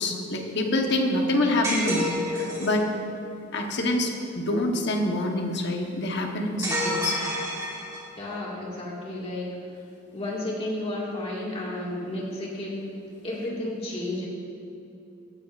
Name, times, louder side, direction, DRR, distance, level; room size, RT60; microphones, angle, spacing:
voice 1, 0.0-2.9 3.5-7.2, left 1 dB, 55° left, 2 dB, 1.1 m, -26 dB
sound 1, 1.6-2.8 6.6-8.2, equal, 15° right, 1.9 m, -29 dB
voice 2, 8.2-9.5 10.1-12.8 13.2-14.3, left 1 dB, 30° left, -4 dB, 1.9 m, -32 dB
15.5 x 9.8 x 2.5 m, 2.7 s
head